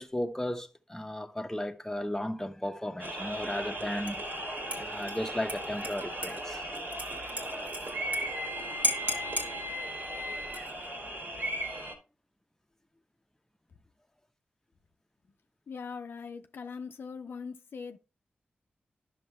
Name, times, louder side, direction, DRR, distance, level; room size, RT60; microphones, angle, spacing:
voice 1, 0.0-4.2 4.8-6.6, left 1 dB, 10° left, 0.9 m, -35 dB
sound 1, 3.0-11.9, right 1 dB, 65° right, 2.5 m, -37 dB
Dishes pots and pans / Liquid, 4.1-4.4 4.7-8.2 8.5-8.6 8.8-9.5 10.4-10.9, left 1 dB, 50° right, 1.8 m, -35 dB
voice 2, 15.7-18.0, left 5 dB, 75° left, 0.6 m, -41 dB
10.5 x 6.4 x 2.2 m
cardioid pair, 45°, 4 cm